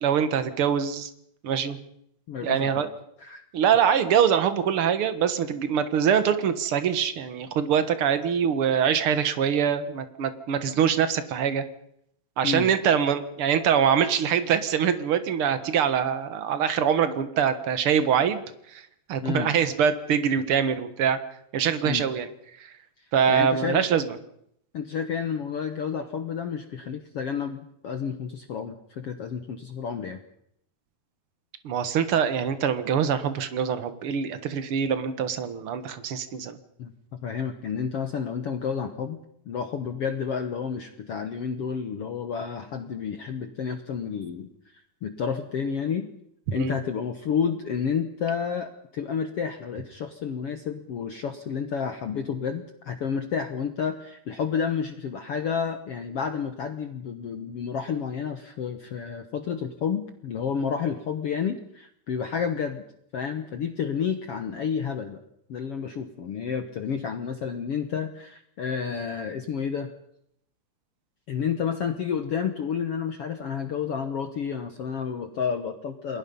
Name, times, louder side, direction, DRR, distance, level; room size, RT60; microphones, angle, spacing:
voice 1, 0.0-1.1 1.4-1.8 2.4-2.9 3.5-11.6 12.4-18.4 18.7-18.8 19.1-21.2 21.5-22.3 22.6-22.7 23.1-24.2 31.6-36.6 46.6-46.8, right 8 dB, 55° right, 11 dB, 1.7 m, -24 dB
voice 2, 2.3-2.9 3.2-3.4 12.4-12.7 19.2-19.5 21.8-22.0 23.0-23.8 24.7-30.2 36.8-39.2 39.4-44.5 45.0-46.1 46.5-62.8 63.1-65.2 65.5-69.9 71.3-76.2, left 7 dB, 65° left, 8 dB, 1.5 m, -30 dB
29.0 x 21.0 x 5.5 m, 0.72 s
omnidirectional pair, 4.3 m